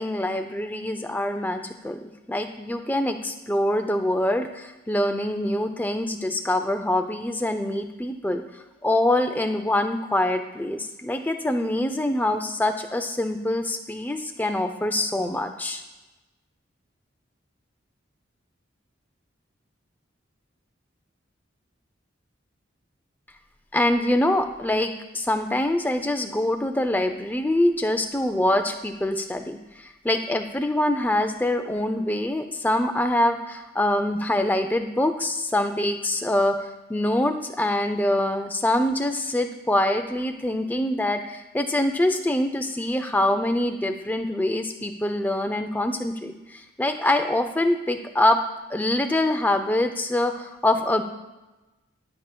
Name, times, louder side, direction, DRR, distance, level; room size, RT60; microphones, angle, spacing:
voice 1, 0.0-8.4 8.8-15.8 23.7-36.5 36.9-48.4 48.7-51.0, left 1 dB, 10° left, 6 dB, 0.4 m, -24 dB
13.5 x 4.9 x 2.2 m, 1.1 s
head